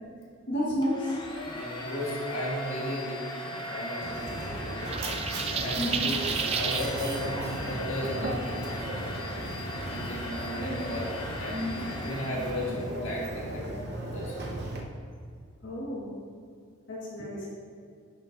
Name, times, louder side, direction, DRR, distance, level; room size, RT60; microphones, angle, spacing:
voice 1, 0.5-1.1 5.8-6.0 15.6-16.1 16.9-17.5, equal, 60° left, -7 dB, 1.6 m, -31 dB
Domestic sounds home sounds, 0.8-12.9, left 1 dB, 20° left, 0.7 m, -39 dB
voice 2, 1.4-4.9 5.5-6.2 6.5-9.2 9.6-13.7 14.1-14.5, equal, 80° left, -4 dB, 1.7 m, -36 dB
Mechanisms, 4.0-14.8, right 1 dB, 55° right, 0.9 m, -36 dB
sound 1, 4.9-6.9, right 6 dB, 30° right, 0.3 m, -31 dB
11.0 x 5.4 x 2.6 m, 2.3 s
head